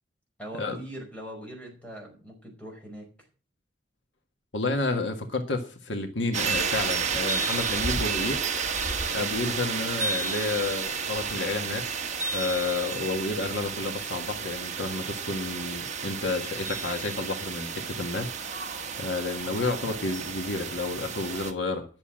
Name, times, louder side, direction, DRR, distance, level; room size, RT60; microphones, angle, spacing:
voice 1, 0.4-3.1, right 1 dB, 5° left, 5.0 m, -41 dB
voice 2, 4.5-8.5 9.1-12.0 12.3-18.7 19.0-21.9, left 3 dB, 80° left, 1.7 m, -30 dB
sound 1, 6.3-21.5, right 5 dB, 40° right, 1.5 m, -31 dB
11.0 x 7.0 x 7.4 m
head